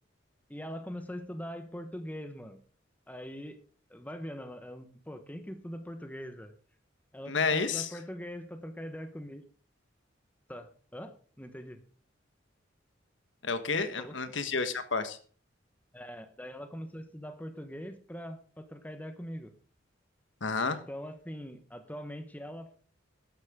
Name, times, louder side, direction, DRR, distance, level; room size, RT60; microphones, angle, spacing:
voice 1, 0.5-2.6 3.1-3.6 3.9-6.5 7.1-9.4 10.5-11.8 13.7-14.2 15.9-19.5 20.6-22.7, equal, 10° left, 8 dB, 1.2 m, -42 dB
voice 2, 7.3-7.9 13.4-15.2 20.4-20.8, left 4 dB, 70° left, 10 dB, 1.4 m, -30 dB
13.5 x 11.5 x 3.8 m, 0.43 s
head